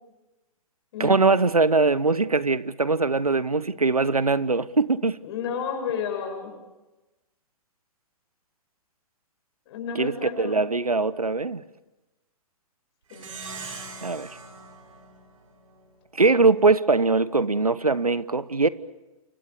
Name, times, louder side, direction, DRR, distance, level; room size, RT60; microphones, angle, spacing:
voice 1, 1.0-5.2 9.9-10.1 10.4-11.6 14.0-14.3 16.1-18.7, right 3 dB, 85° right, 18 dB, 1.1 m, -21 dB
voice 2, 5.2-6.5 9.7-10.6 13.1-13.3, left 7 dB, 45° left, 4 dB, 7.3 m, -31 dB
Plucked string instrument, 13.1-15.9, right 4 dB, 65° right, 5.7 m, -41 dB
28.5 x 24.5 x 6.9 m, 1.1 s
figure-of-eight pair, 120°, 18 cm